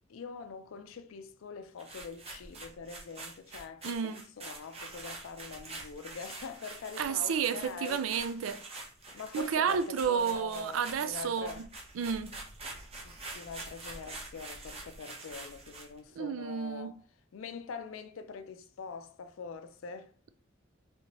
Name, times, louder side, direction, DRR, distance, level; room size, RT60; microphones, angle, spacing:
voice 1, 0.1-8.1 9.1-11.7 13.0-17.0 17.3-20.1, left 5 dB, 85° left, 0.4 m, -44 dB
sound 1, 1.8-16.0, right 2 dB, 30° right, 0.8 m, -46 dB
voice 2, 3.8-4.2 7.0-8.6 9.3-11.5 12.0-12.4 16.2-16.9, right 7 dB, 90° right, 0.4 m, -31 dB
3.4 x 2.9 x 2.9 m
head